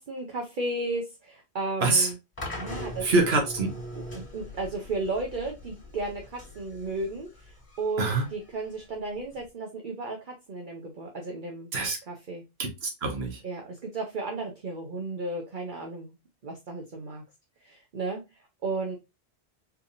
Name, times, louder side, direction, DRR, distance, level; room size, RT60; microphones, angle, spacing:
voice 1, 0.0-2.2 2.6-3.0 3.9-11.7 12.1-12.4 13.4-16.1 16.4-17.2 17.6-18.2 18.6-19.0, right 3 dB, 50° right, 1 dB, 0.9 m, -34 dB
sound 1, 2.4-9.4, left 1 dB, 30° left, 2.0 m, -41 dB
voice 2, 3.0-3.7 8.0-8.3 11.7-12.0 12.6-13.4, right 3 dB, 65° right, 3 dB, 1.2 m, -25 dB
4.6 x 3.4 x 2.5 m, 0.23 s
omnidirectional pair, 1.1 m